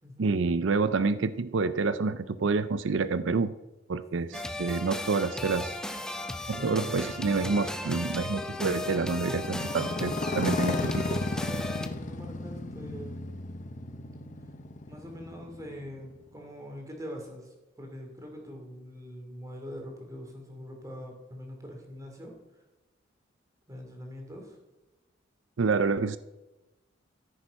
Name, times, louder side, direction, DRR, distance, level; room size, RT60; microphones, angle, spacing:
voice 1, 0.2-3.5 3.9-5.8 6.5-10.8 25.6-26.2, right 4 dB, 75° right, 14 dB, 0.5 m, -28 dB
sound 1, 4.3-11.9, left 2 dB, 5° left, 0.8 m, -36 dB
Motorcycle, 6.4-16.3, left 2 dB, 40° left, 0.8 m, -35 dB
voice 2, 6.5-7.0 10.2-13.2 14.9-22.3 23.7-24.6, equal, 20° right, 2 dB, 3.0 m, -43 dB
14.5 x 8.8 x 5.3 m, 1.1 s
head